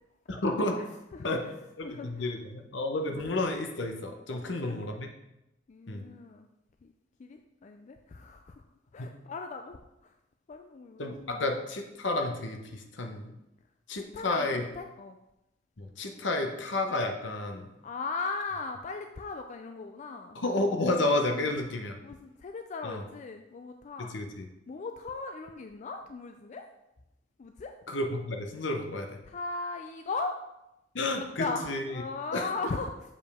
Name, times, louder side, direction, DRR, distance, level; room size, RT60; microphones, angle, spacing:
voice 1, 0.3-0.8 1.2-1.4 1.8-5.1 5.9-6.1 9.0-9.1 11.0-13.3 13.9-14.6 15.8-17.7 20.3-21.9 22.8-23.0 24.0-24.5 27.9-29.2 30.9-32.0 32.3-32.5, left 2 dB, 70° left, 4 dB, 0.9 m, -31 dB
voice 2, 1.1-1.5 1.8-2.3 4.3-4.8 5.7-6.5 6.8-6.9 7.2-8.6 8.9-10.1 10.5-11.4 14.1-15.2 17.8-20.4 21.3-21.5 22.0-24.1 24.7-26.7 27.4-27.7 29.2-30.4 31.4-32.9, left 3 dB, 40° left, 5 dB, 0.4 m, -38 dB
7.2 x 5.3 x 3.4 m, 0.91 s
head